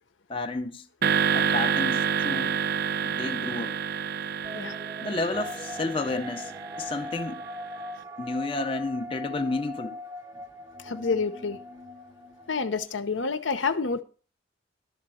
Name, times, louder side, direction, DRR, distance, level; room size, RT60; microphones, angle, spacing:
voice 1, 0.3-0.9 1.3-2.6 3.0-3.8 5.0-7.5 8.2-10.0, left 3 dB, 30° left, 0.6 m, -31 dB
sound 1, 1.0-7.4, right 7 dB, 55° right, 0.4 m, -28 dB
sound 2, 4.4-12.9, left 1 dB, 15° right, 0.7 m, -40 dB
voice 2, 10.8-11.6 12.5-14.0, left 4 dB, 80° left, 0.9 m, -28 dB
12.0 x 4.2 x 7.7 m
head